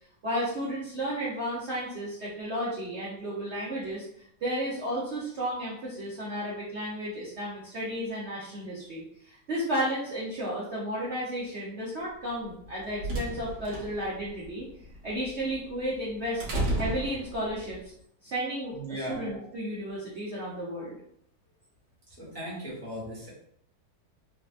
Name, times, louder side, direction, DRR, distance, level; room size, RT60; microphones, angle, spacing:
voice 1, 0.2-4.1 4.4-14.6 15.0-16.4 16.8-17.8 18.2-18.8 19.1-20.9, equal, 65° right, -7 dB, 0.6 m, -33 dB
sound 1, 12.5-17.8, right 1 dB, 80° right, 1.6 m, -34 dB
voice 2, 18.7-19.2 22.1-23.3, equal, 10° left, -8 dB, 0.7 m, -37 dB
3.8 x 2.2 x 2.4 m, 0.70 s
omnidirectional pair, 2.1 m